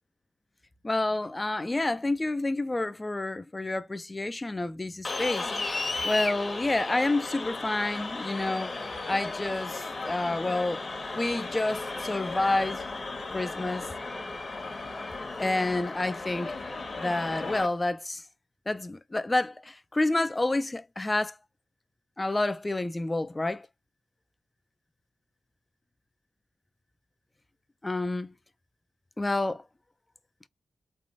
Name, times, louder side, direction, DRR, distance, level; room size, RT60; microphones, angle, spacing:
voice 1, 0.8-5.5 6.0-10.8 11.1-12.8 13.3-13.9 15.4-16.5 17.0-18.2 18.7-21.3 22.2-23.7 27.8-28.3 29.2-29.6, left 2 dB, 30° left, 0.5 m, -29 dB
sound 1, 5.0-17.7, left 3 dB, 45° left, 1.2 m, -35 dB
3.3 x 2.5 x 2.6 m
cardioid pair, 50°, 0 cm